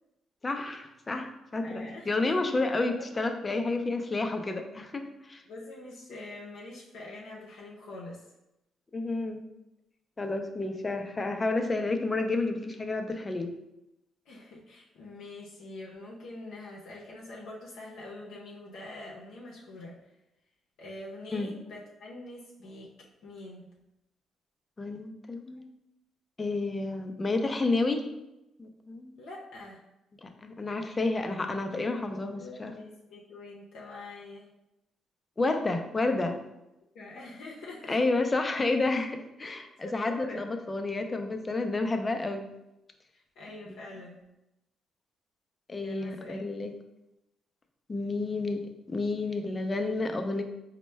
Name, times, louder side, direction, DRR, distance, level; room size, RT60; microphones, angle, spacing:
voice 1, 0.4-5.4 8.9-9.4 10.2-13.6 21.3-21.5 24.8-25.7 26.4-28.1 28.6-29.2 30.2-32.7 35.4-36.4 37.9-42.5 43.7-43.8 45.7-46.7 47.9-50.4, left 3 dB, 25° left, 6 dB, 0.4 m, -30 dB
voice 2, 1.6-3.1 5.5-8.2 14.3-20.0 20.8-23.7 29.2-29.8 32.1-34.5 36.9-38.0 39.8-40.4 43.1-44.2 45.7-46.5, left 2 dB, 80° left, -3 dB, 0.6 m, -45 dB
4.2 x 2.1 x 3.2 m, 0.90 s
cardioid pair, 90°, 0 cm